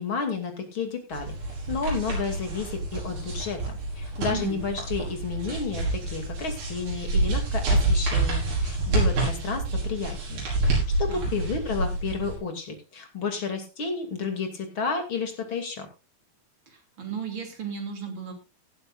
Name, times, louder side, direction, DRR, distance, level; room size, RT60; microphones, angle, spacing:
voice 1, 0.0-1.4 1.7-3.6 4.0-15.9, left 5 dB, 35° left, 5 dB, 2.8 m, -31 dB
sound 1, 1.1-12.4, right 2 dB, 70° right, 7.2 m, -27 dB
voice 2, 4.2-4.6 11.1-11.3 16.7-18.3, right 6 dB, 35° right, 3 dB, 3.3 m, -35 dB
17.5 x 11.5 x 2.5 m, 0.28 s
omnidirectional pair, 4.3 m